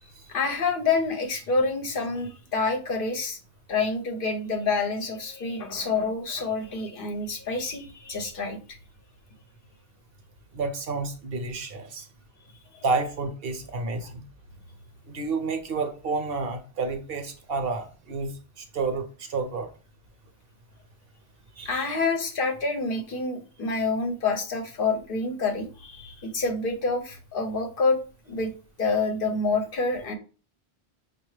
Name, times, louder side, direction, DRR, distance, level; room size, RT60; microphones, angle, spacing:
voice 1, 0.3-3.4 3.7-8.8 12.7-12.8 21.7-28.0 28.3-28.5 28.8-30.1, left 4 dB, 60° left, 0.8 m, -27 dB
voice 2, 10.5-12.1 12.8-14.2 15.1-18.3 18.6-19.7 21.6-22.0, right 4 dB, 65° right, 0.9 m, -30 dB
5.5 x 2.3 x 3.1 m
omnidirectional pair, 1.1 m